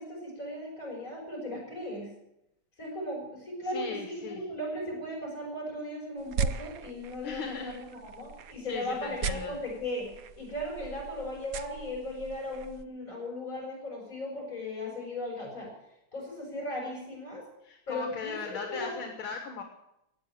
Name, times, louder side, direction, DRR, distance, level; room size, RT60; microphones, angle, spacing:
voice 1, 0.0-2.1 2.8-15.7 16.1-17.4 17.9-19.0, left 1 dB, 35° left, -2 dB, 7.6 m, -37 dB
voice 2, 3.7-4.4 7.2-7.8 8.7-9.6 17.6-19.6, left 5 dB, 75° left, 4 dB, 2.3 m, -38 dB
sound 1, 6.2-12.8, right 5 dB, 65° right, 0.8 m, -38 dB
16.0 x 9.6 x 9.2 m, 0.84 s
omnidirectional pair, 2.3 m